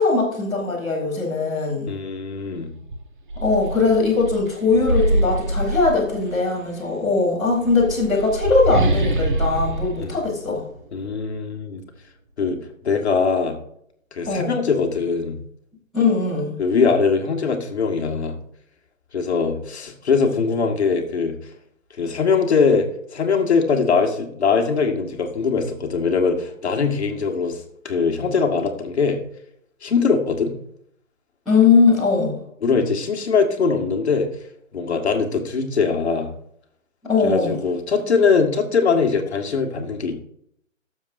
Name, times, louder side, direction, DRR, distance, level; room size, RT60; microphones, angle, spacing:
voice 1, 0.0-1.9 3.4-10.6 14.3-14.5 15.9-16.5 31.4-32.3 37.1-37.5, left 4 dB, ahead, -23 dB, 0.7 m, -20 dB
voice 2, 1.9-2.7 10.0-10.2 10.9-11.8 12.4-13.6 14.1-15.4 16.6-18.4 19.1-21.3 22.0-29.2 29.8-30.5 32.6-34.3 34.7-36.3 37.2-40.2, left 5 dB, 55° left, 3 dB, 1.9 m, -21 dB
sound 1, 2.3-2.5 2.9-6.5 7.5-11.1, right 1 dB, 40° right, 1.2 m, -24 dB
17.5 x 7.3 x 2.7 m, 0.70 s
hypercardioid pair, 170°, 40 cm